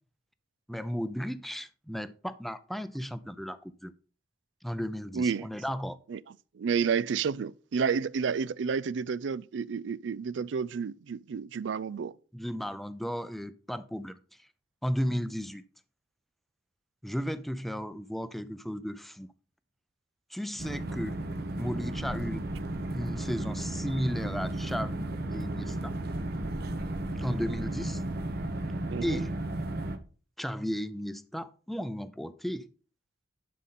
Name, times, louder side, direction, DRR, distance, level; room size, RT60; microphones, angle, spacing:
voice 1, 0.7-3.9 4.6-6.0 12.3-14.2 14.8-15.6 17.0-19.3 20.3-21.2 21.5-22.5 22.9-25.1 25.3-25.9 27.1-28.0 29.0-29.4 30.4-32.7, equal, ahead, 0.5 m, -34 dB
voice 2, 5.1-5.5 6.1-6.2 6.6-12.2 28.9-29.2, right 6 dB, 80° right, 0.4 m, -30 dB
sound 1, 20.6-30.0, right 1 dB, 55° right, 0.9 m, -34 dB
11.5 x 5.2 x 4.2 m
head